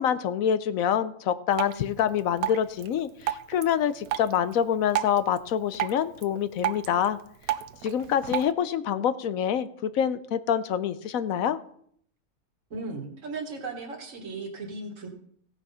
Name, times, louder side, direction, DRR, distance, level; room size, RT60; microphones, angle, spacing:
voice 1, 0.0-7.2 7.8-11.6, left 9 dB, 75° left, 13 dB, 1.1 m, -26 dB
Drip, 1.5-8.5, right 12 dB, 85° right, 1.1 m, -34 dB
voice 2, 12.7-15.1, right 3 dB, 60° right, 2 dB, 2.1 m, -36 dB
16.5 x 5.9 x 5.6 m, 0.65 s
omnidirectional pair, 1.5 m